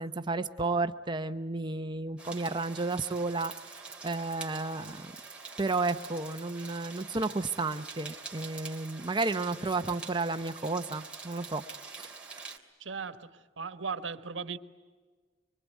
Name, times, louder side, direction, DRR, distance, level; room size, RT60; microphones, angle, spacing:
voice 1, 0.0-3.5 4.0-5.1 5.6-11.6 12.0-12.1, right 3 dB, 25° right, 9 dB, 0.8 m, -32 dB
sound 1, 2.2-12.6, right 4 dB, 5° right, 2.7 m, -45 dB
voice 2, 12.8-14.6, right 5 dB, 80° right, 11 dB, 1.3 m, -37 dB
25.0 x 24.0 x 9.3 m, 1.5 s
head